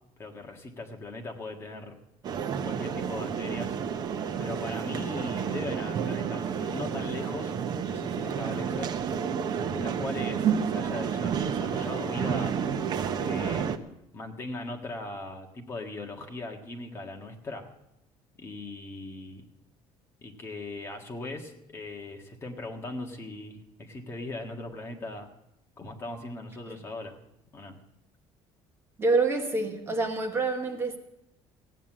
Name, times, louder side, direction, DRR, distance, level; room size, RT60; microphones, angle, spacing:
voice 1, 0.2-2.0 2.6-3.7 4.4-7.6 7.9-8.9 9.7-12.6 13.2-13.7 14.1-17.7 18.4-19.4 20.2-25.3 25.8-27.2 27.5-27.8, left 2 dB, 25° left, 2 dB, 1.5 m, -39 dB
sound 1, 2.2-13.8, right 7 dB, 40° right, 0.8 m, -30 dB
voice 2, 29.0-31.0, right 3 dB, 20° right, 4 dB, 1.2 m, -27 dB
16.0 x 9.3 x 7.4 m, 0.85 s
cardioid pair, 165°, 11 cm